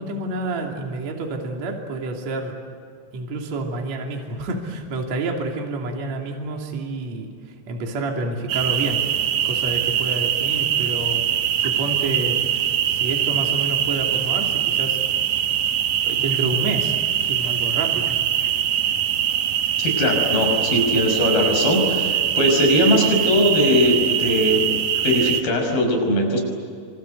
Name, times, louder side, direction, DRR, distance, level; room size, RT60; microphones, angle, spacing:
voice 1, 0.0-2.6 3.1-9.0 9.4-11.2 11.6-12.4 12.9-15.0 16.0-18.2, right 2 dB, 45° right, 1 dB, 3.8 m, -29 dB
sound 1, 8.5-25.4, right 10 dB, 70° right, 1.8 m, -22 dB
voice 2, 19.8-26.4, left 1 dB, 55° left, 3 dB, 7.3 m, -20 dB
27.0 x 26.0 x 8.1 m, 2.4 s
omnidirectional pair, 5.0 m